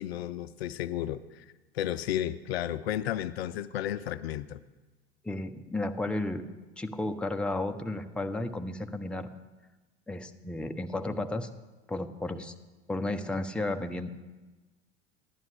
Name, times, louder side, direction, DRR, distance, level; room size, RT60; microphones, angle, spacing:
voice 1, 0.0-1.4 1.7-4.6, left 11 dB, 65° left, 15 dB, 0.5 m, -33 dB
voice 2, 5.2-6.4 6.8-9.3 10.1-11.5 11.9-12.5 12.9-14.1, left 2 dB, 5° left, 6 dB, 0.6 m, -33 dB
14.5 x 10.5 x 3.4 m, 1.2 s
figure-of-eight pair, 70°, 33 cm